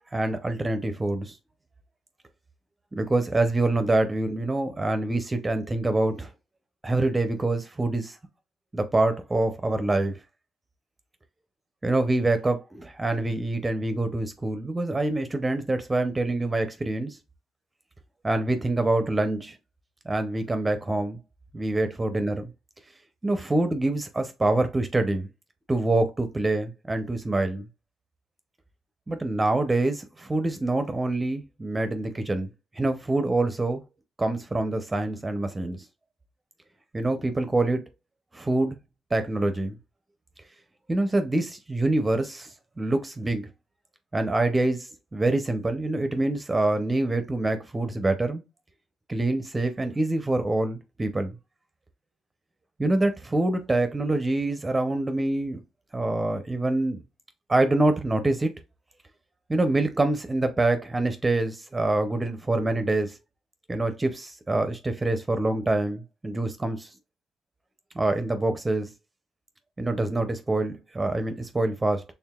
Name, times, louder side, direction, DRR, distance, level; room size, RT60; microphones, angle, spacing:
voice 1, 0.1-1.4 2.9-6.3 6.8-8.2 8.7-10.1 11.8-17.2 18.2-19.6 20.1-21.2 21.5-22.5 23.2-25.3 25.7-27.7 29.1-32.5 32.8-33.8 34.2-35.8 36.9-37.8 38.3-38.8 39.1-39.7 40.9-43.5 44.1-48.4 49.1-51.3 52.8-55.6 55.9-57.0 57.5-58.5 59.5-63.2 63.7-66.9 68.0-68.9 69.8-72.0, right 2 dB, 20° right, 0.5 m, -25 dB
4.6 x 3.3 x 2.2 m
cardioid pair, 90°, 0 cm